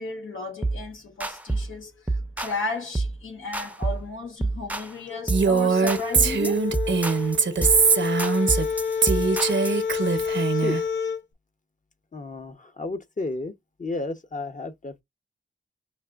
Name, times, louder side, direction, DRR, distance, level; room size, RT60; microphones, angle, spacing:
voice 1, 0.0-6.6, left 3 dB, 85° left, 1.7 m, -34 dB
sound 1, 0.6-0.8 1.2-1.7 2.1-2.6 2.9-3.2 3.5-4.1 4.4-4.9 5.3-5.6 5.9-9.8, right 2 dB, 10° right, 0.6 m, -28 dB
sound 2, 5.1-11.2, left 6 dB, 65° left, 0.6 m, -29 dB
Female speech woman speaking, 5.3-8.7 9.0-10.8, right 5 dB, 70° right, 0.8 m, -22 dB
voice 2, 12.1-13.5 13.8-15.0, left 2 dB, 40° left, 0.9 m, -32 dB
5.6 x 2.5 x 2.4 m
cardioid pair, 50°, 20 cm